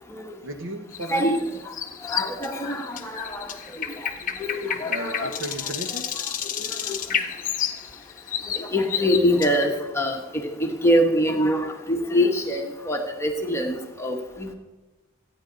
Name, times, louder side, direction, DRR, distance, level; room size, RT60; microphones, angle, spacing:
voice 1, 0.4-1.3 4.9-6.1, right 1 dB, 60° right, 6 dB, 1.5 m, -34 dB
sound 1, 0.9-9.8, left 9 dB, 40° left, 1.0 m, -31 dB
voice 2, 1.1-1.7 2.0-3.6 4.0-4.1 4.4-5.7 6.5-7.0 8.5-10.2 10.6-14.5, equal, 10° left, 1 dB, 1.5 m, -25 dB
28.0 x 9.5 x 4.1 m, 1.1 s
head